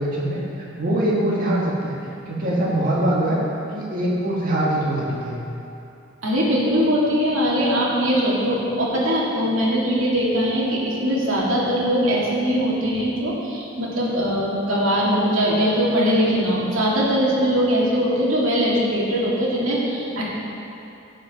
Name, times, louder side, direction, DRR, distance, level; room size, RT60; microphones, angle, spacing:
voice 1, 0.0-2.0 2.3-3.4 3.7-5.3, right 1 dB, 45° right, -6 dB, 1.8 m, -23 dB
voice 2, 6.2-20.3, equal, 85° right, -5 dB, 2.4 m, -21 dB
16.0 x 5.3 x 5.9 m, 2.8 s
head